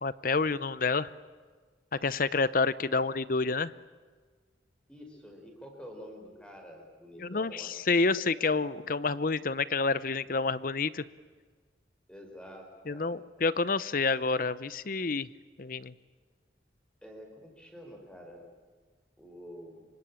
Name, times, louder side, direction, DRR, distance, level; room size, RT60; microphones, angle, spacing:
voice 1, 0.0-1.1 2.0-3.7 7.2-11.0 12.9-15.3 15.6-15.9, left 4 dB, 50° left, 16 dB, 0.8 m, -28 dB
voice 2, 4.9-7.7 8.1-8.2 12.1-13.2 17.0-18.5 19.2-19.8, equal, 5° left, 2 dB, 5.2 m, -48 dB
27.0 x 24.5 x 8.8 m, 1.5 s
head